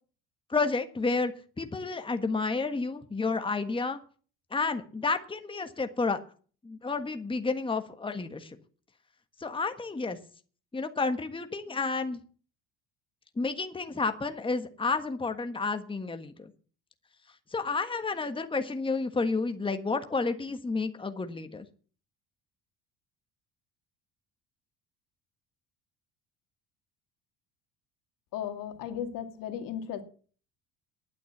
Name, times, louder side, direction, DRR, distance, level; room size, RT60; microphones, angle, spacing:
voice 1, 0.5-1.3 1.6-4.0 4.5-6.2 6.6-8.6 9.4-10.2 10.7-12.2 13.4-16.5 17.5-21.6, left 4 dB, 15° left, 8 dB, 1.5 m, -30 dB
voice 2, 28.3-30.0, left 9 dB, 70° left, 7 dB, 2.4 m, -35 dB
11.0 x 9.8 x 7.4 m, 0.42 s
supercardioid pair, 80°, 34 cm